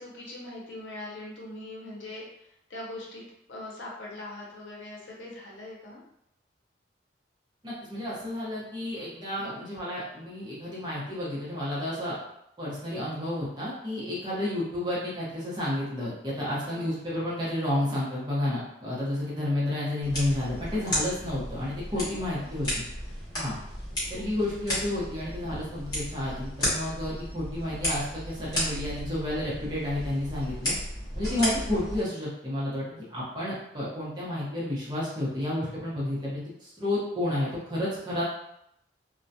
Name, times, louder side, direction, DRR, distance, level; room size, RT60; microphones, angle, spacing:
voice 1, 0.0-6.0 9.3-9.6 16.7-17.0 21.9-22.5 24.1-24.2, left 1 dB, 85° left, -3 dB, 0.7 m, -42 dB
voice 2, 7.6-12.2 12.6-22.8 23.3-23.6 24.1-30.7 31.2-38.2, left 1 dB, 25° right, -8 dB, 0.8 m, -31 dB
sound 1, 20.0-32.0, left 1 dB, 20° left, 1.0 m, -34 dB
2.2 x 2.2 x 2.6 m, 0.78 s
head